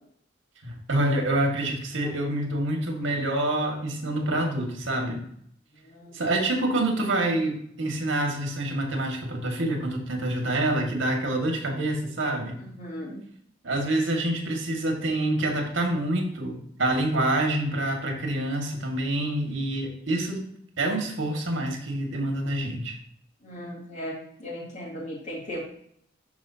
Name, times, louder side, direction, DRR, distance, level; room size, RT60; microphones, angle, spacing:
voice 1, 0.6-5.2 6.1-12.6 13.6-20.4 20.8-23.0, right 1 dB, 90° right, 2 dB, 2.0 m, -27 dB
voice 2, 5.7-6.2 12.6-13.2 23.4-25.6, equal, 40° left, -4 dB, 2.7 m, -37 dB
12.0 x 4.6 x 2.8 m, 0.69 s
head